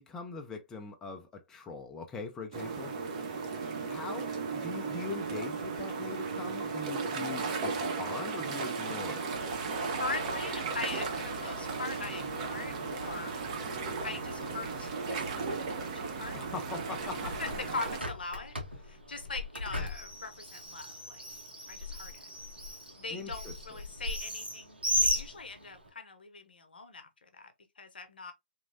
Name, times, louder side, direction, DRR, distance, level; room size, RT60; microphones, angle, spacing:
voice 1, 0.0-2.9 3.9-9.3 16.3-17.5 23.1-23.5, left 4 dB, 10° left, 0.3 m, -42 dB
sound 1, 2.5-18.0, right 4 dB, 40° right, 0.7 m, -35 dB
sound 2, 9.3-17.6, equal, 65° right, 1.5 m, -47 dB
voice 2, 9.9-13.4 14.0-16.4 17.0-18.5 18.8-21.2 21.7-22.3 23.0-28.3, left 4 dB, 70° left, 0.7 m, -41 dB
Bird, 17.0-25.9, equal, 85° right, 1.2 m, -36 dB
3.0 x 2.6 x 2.5 m
figure-of-eight pair, 130°, 5 cm